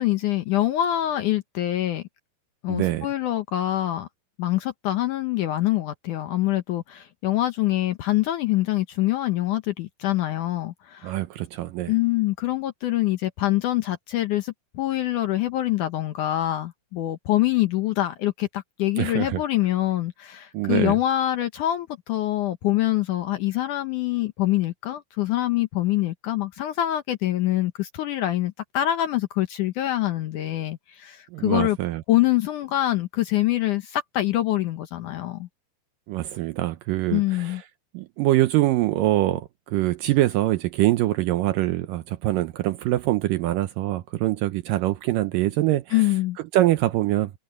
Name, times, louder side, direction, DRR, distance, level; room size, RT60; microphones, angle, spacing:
voice 1, 0.0-2.0 2.6-4.1 4.4-11.2 11.9-31.8 32.1-35.5 37.1-37.6 45.9-46.4, left 14 dB, 70° left, 2.0 m, -25 dB
voice 2, 2.7-3.1 11.0-11.9 19.0-19.4 20.5-21.0 31.3-32.0 36.1-37.6 37.9-45.8 46.5-47.3, right 15 dB, 80° right, 2.1 m, -24 dB
omnidirectional pair, 4.5 m